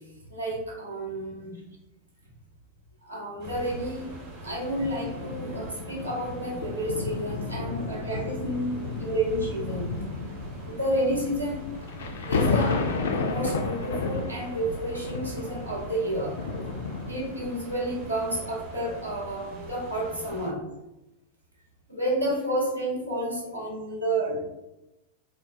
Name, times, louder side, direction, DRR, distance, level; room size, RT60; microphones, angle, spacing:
voice 1, 0.3-1.6 3.0-4.1 4.4-10.0 10.6-11.6 12.3-12.9 13.2-16.5 17.1-20.6 21.9-24.4, right 1 dB, 85° right, -3 dB, 0.8 m, -30 dB
sound 1, 3.4-20.5, right 1 dB, 45° right, 1.0 m, -43 dB
sound 2, 4.8-17.6 18.2-18.4, left 4 dB, 65° left, 0.3 m, -32 dB
3.9 x 2.1 x 2.3 m, 0.96 s
figure-of-eight pair, 90°, 0 cm